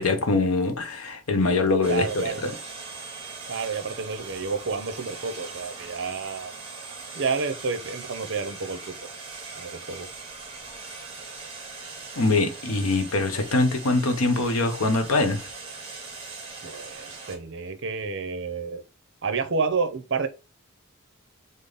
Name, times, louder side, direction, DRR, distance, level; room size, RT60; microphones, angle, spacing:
voice 1, 0.0-2.5 12.2-15.4, left 3 dB, 85° left, 0.9 m, -23 dB
sound 1, 1.8-17.4, right 4 dB, 25° right, 1.1 m, -40 dB
voice 2, 1.9-2.5 3.5-6.5 7.1-8.9 9.6-10.1 16.6-18.8 19.2-20.3, right 4 dB, 55° right, 0.6 m, -30 dB
5.1 x 2.0 x 3.9 m
head